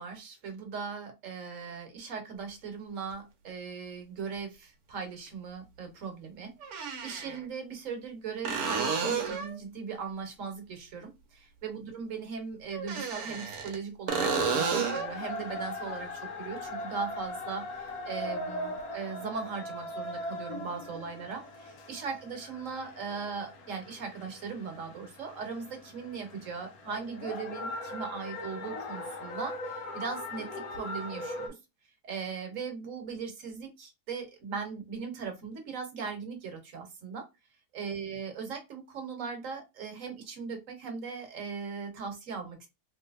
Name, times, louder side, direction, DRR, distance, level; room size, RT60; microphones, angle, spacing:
voice 1, 0.0-31.6 32.0-37.2 37.7-42.7, right 5 dB, 60° right, 5 dB, 1.3 m, -39 dB
sound 1, 3.1-3.2 5.3-5.4 6.6-7.4 8.4-9.6 12.7-13.8 14.1-15.1 18.8-18.9, right 5 dB, 75° right, 1.2 m, -31 dB
sound 2, 14.1-31.5, left 1 dB, 75° left, 1.2 m, -40 dB
3.3 x 2.8 x 2.4 m, 0.24 s
omnidirectional pair, 1.6 m